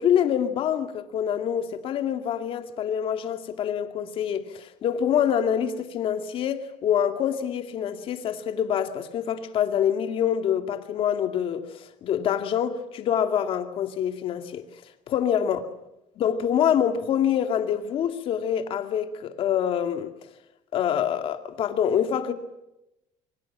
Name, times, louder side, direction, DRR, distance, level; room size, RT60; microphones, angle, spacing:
voice 1, 0.0-14.6 15.1-15.6 16.2-20.1 20.7-22.3, left 9 dB, 50° left, 2.3 m, -26 dB
26.5 x 24.0 x 7.4 m
cardioid pair, 145°, 12 cm